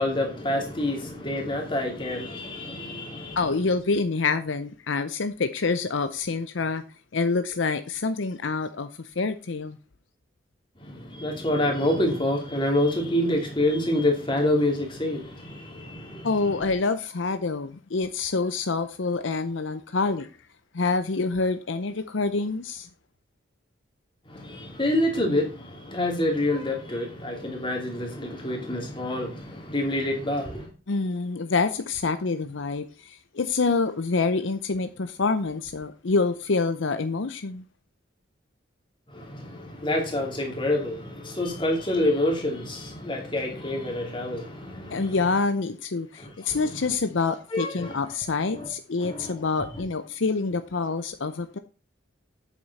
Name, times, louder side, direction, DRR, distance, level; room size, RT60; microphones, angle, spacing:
voice 1, 0.0-3.4 10.8-16.3 24.3-30.7 39.1-45.2 46.2-46.6 47.5-48.0 48.5-48.7 49.0-49.8, left 1 dB, 25° left, 2.7 m, -27 dB
voice 2, 3.4-6.8 7.1-8.9 9.2-9.8 16.2-20.3 20.7-22.9 30.9-37.6 44.9-51.6, left 4 dB, 70° left, 0.7 m, -26 dB
8.4 x 7.2 x 4.2 m
head